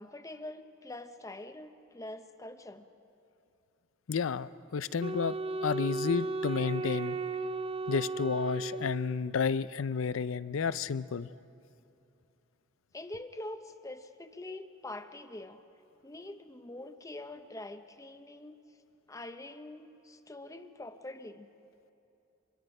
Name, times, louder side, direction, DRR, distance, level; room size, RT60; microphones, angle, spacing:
voice 1, 0.0-2.9 12.9-15.6 16.0-18.6 19.1-21.5, left 2 dB, 15° left, 9 dB, 0.7 m, -44 dB
voice 2, 4.1-5.3 5.6-7.2 7.9-11.3, left 5 dB, 80° left, 16 dB, 0.5 m, -31 dB
Wind instrument woodwind instrument, 5.0-9.4, right 3 dB, 30° right, 0.5 m, -35 dB
25.5 x 22.5 x 5.4 m, 2.7 s
head